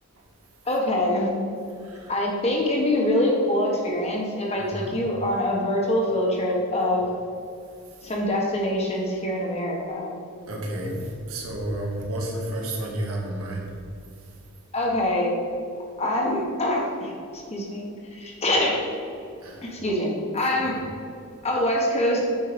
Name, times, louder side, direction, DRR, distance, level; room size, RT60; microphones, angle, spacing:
voice 1, 0.6-1.3 2.1-7.2 8.0-10.1 14.7-15.3 16.0-17.8 18.1-18.8 19.6-20.8 21.4-22.2, left 1 dB, 30° left, -2 dB, 1.5 m, -24 dB
voice 2, 1.8-2.1 4.6-4.9 10.4-13.7 19.4-19.7 20.6-20.7, right 1 dB, 85° right, -1 dB, 1.9 m, -31 dB
9.4 x 5.5 x 5.2 m, 2.5 s
head